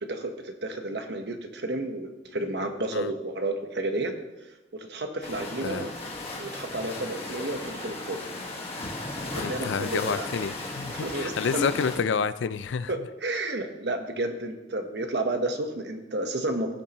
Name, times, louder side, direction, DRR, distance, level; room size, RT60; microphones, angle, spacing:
voice 1, 0.0-4.1 4.7-5.9 6.3-8.2 9.3-10.3 10.9-11.7 12.9-16.8, right 2 dB, 65° right, 5 dB, 1.1 m, -31 dB
sound 1, 5.2-12.0, left 2 dB, 30° left, 1.5 m, -36 dB
voice 2, 9.3-12.9, left 6 dB, 80° left, 15 dB, 0.4 m, -29 dB
16.5 x 7.2 x 3.0 m, 1.1 s
head